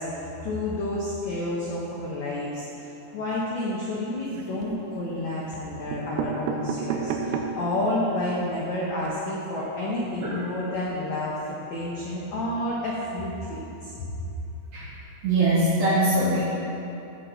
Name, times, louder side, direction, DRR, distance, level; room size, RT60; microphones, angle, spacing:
voice 1, 0.0-14.1, left 1 dB, 90° left, -5 dB, 1.5 m, -30 dB
sound 1, 4.2-4.8 5.5-5.6 5.9-7.7 8.2-8.3 8.5-8.6 8.9-9.1, right 6 dB, 85° right, 2.9 m, -31 dB
voice 2, 15.2-16.4, right 2 dB, 60° right, -10 dB, 3.2 m, -22 dB
13.0 x 8.0 x 4.0 m, 3.0 s
omnidirectional pair, 5.0 m